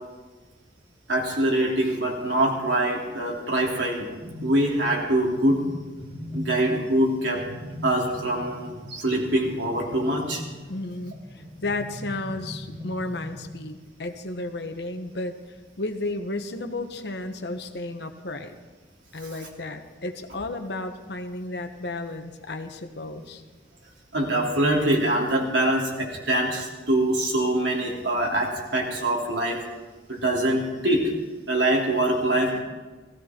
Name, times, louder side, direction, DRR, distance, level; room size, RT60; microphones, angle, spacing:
voice 1, 1.1-4.1 4.4-5.6 6.3-7.4 7.8-10.4 24.1-29.6 30.1-31.1 31.5-32.6, right 1 dB, 85° right, -2 dB, 3.4 m, -24 dB
sound 1, 4.2-4.9 5.1-6.9 7.3-13.5, left 1 dB, 25° right, 6.3 m, -39 dB
voice 2, 10.7-15.4 15.8-18.5 19.1-23.4, left 2 dB, 65° left, 6 dB, 1.3 m, -33 dB
17.0 x 15.5 x 4.5 m, 1.3 s
head